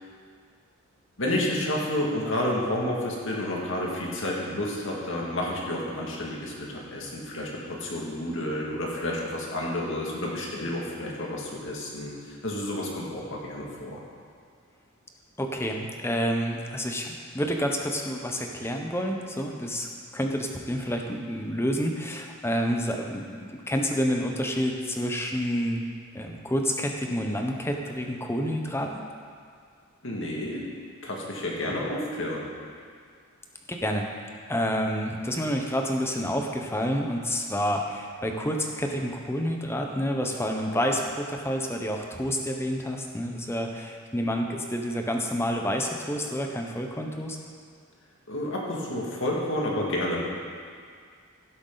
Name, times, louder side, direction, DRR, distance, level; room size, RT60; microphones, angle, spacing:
voice 1, 1.2-14.0 30.0-30.7 31.0-32.4 48.3-50.2, left 1 dB, 60° left, -3 dB, 2.2 m, -30 dB
voice 2, 15.4-19.9 20.1-25.8 26.1-28.9 33.7-34.1 34.5-47.4, equal, 10° left, 2 dB, 0.9 m, -29 dB
16.5 x 8.0 x 4.0 m, 2.1 s
head